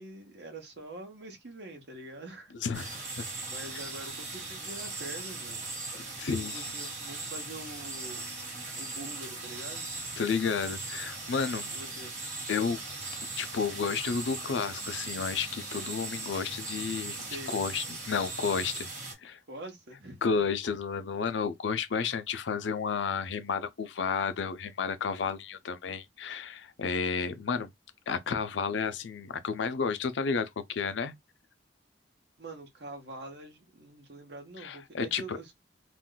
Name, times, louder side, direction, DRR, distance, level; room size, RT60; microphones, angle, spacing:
voice 1, 0.0-2.5 3.4-5.7 6.3-8.3 8.8-9.9 11.7-12.1 17.3-17.5 19.5-20.4 32.4-35.5, right 2 dB, 70° right, 1.0 m, -44 dB
voice 2, 2.6-3.3 6.2-6.7 10.2-11.7 12.5-12.8 13.4-17.2 17.5-18.9 19.2-19.4 20.2-27.7 28.1-31.1 34.6-35.4, left 5 dB, 85° left, 0.5 m, -31 dB
sound 1, 2.7-19.1, right 3 dB, 45° right, 1.2 m, -39 dB
2.5 x 2.2 x 3.8 m
head